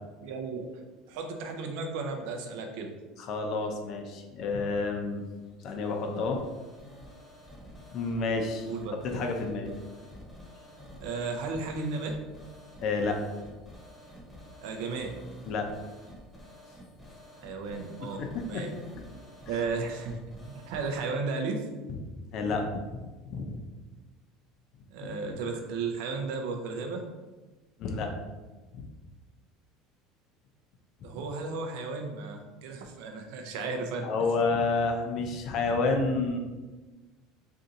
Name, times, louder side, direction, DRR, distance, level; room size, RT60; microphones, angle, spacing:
voice 1, 0.2-0.7 1.1-2.9 8.7-8.9 11.0-12.2 14.6-15.2 17.4-18.2 18.5-18.7 19.5-20.2 20.4-21.7 24.9-27.0 31.0-34.1, right 4 dB, 75° right, 4 dB, 0.5 m, -34 dB
voice 2, 3.2-5.2 5.6-6.4 7.9-8.7 9.0-9.7 12.8-13.2 15.5-15.7 18.0-18.8 19.5-19.6 21.9-22.0 22.3-23.6 27.8-28.1 28.7-28.9 34.0-36.4, left 3 dB, 55° left, 3 dB, 0.5 m, -30 dB
sound 1, 5.0-20.9, equal, 10° left, 0.9 m, -50 dB
2.7 x 2.4 x 3.9 m, 1.2 s
supercardioid pair, 105°, 0 cm